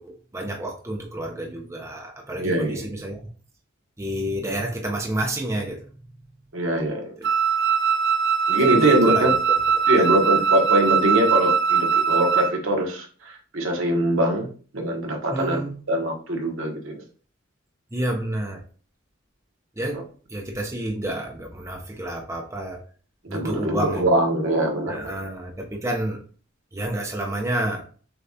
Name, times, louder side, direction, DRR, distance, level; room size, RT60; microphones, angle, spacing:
voice 1, 0.0-3.2 4.0-5.9 7.2-7.3 8.7-9.3 10.0-10.4 15.3-15.8 17.9-18.6 19.8-20.0 20.3-22.8 23.3-24.0 24.9-26.2 26.7-27.9, right 1 dB, 15° right, 0.6 m, -29 dB
voice 2, 2.4-2.9 6.5-7.1 8.5-9.3 9.9-14.5 14.7-15.6 15.9-17.0 23.3-25.0, right 1 dB, 70° right, 1.1 m, -23 dB
Wind instrument woodwind instrument, 7.2-12.6, right 7 dB, 55° right, 0.4 m, -21 dB
6.5 x 2.4 x 2.7 m
head